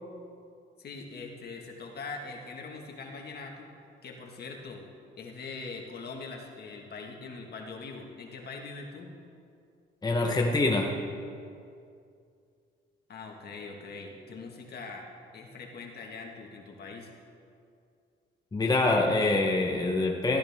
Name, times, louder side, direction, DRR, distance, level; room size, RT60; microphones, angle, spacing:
voice 1, 0.8-3.7 4.0-4.8 5.2-9.1 13.1-15.1 15.3-17.1, left 4 dB, 55° left, 1 dB, 1.8 m, -42 dB
voice 2, 10.0-10.9 18.5-20.4, left 2 dB, 20° left, 1 dB, 1.0 m, -25 dB
14.0 x 13.0 x 3.6 m, 2.4 s
cardioid pair, 90°, 20 cm